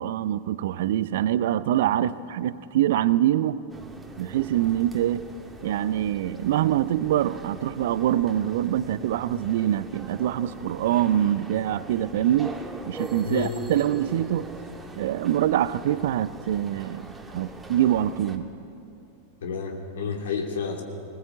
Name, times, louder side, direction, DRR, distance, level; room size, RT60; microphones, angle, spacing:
voice 1, 0.0-3.6 4.2-5.3 5.6-12.6 12.9-14.5 15.0-18.5, right 12 dB, 55° right, 17 dB, 0.6 m, -24 dB
sound 1, 3.7-18.4, right 2 dB, 10° right, 1.7 m, -42 dB
voice 2, 13.2-13.6 19.4-20.8, left 5 dB, 60° left, 3 dB, 2.9 m, -30 dB
20.0 x 18.5 x 8.0 m, 2.6 s
figure-of-eight pair, 90°, 0 cm